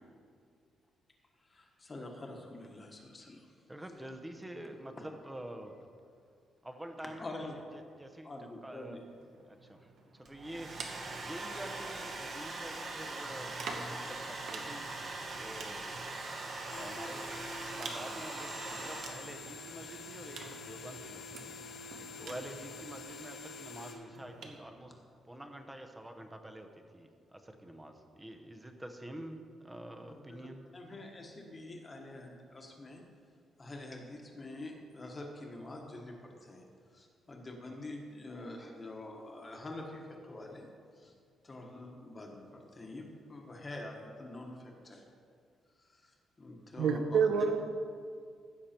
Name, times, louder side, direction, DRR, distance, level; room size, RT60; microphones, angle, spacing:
voice 1, 1.4-3.5 4.9-5.0 7.2-7.9 8.2-9.0 19.8-19.9 20.4-20.6 30.1-33.0 33.6-36.6 36.9-40.7 41.0-41.1 41.4-45.0 45.8-46.1 46.4-47.5, left 2 dB, 20° left, 1 dB, 1.3 m, -46 dB
voice 2, 3.7-5.7 6.6-7.2 8.0-8.3 8.6-9.0 10.2-10.7 11.0-13.5 13.9-14.9 15.3-16.0 16.7-17.3 17.8-18.5 18.8-21.5 22.2-24.9 25.3-26.7 26.9-27.1 27.6-30.6, right 1 dB, 10° right, 5 dB, 0.8 m, -47 dB
sound 1, 9.1-12.3 13.2-23.2 24.1-24.6, right 4 dB, 60° right, 1.1 m, -49 dB
Domestic sounds home sounds, 10.2-19.5, right 2 dB, 35° right, 1.2 m, -42 dB
sound 2, 16.7-23.9, left 3 dB, 75° left, 2.1 m, -47 dB
voice 3, 46.8-47.6, right 6 dB, 80° right, 7 dB, 0.8 m, -27 dB
15.5 x 6.5 x 4.4 m, 2.2 s
cardioid pair, 155°, 0 cm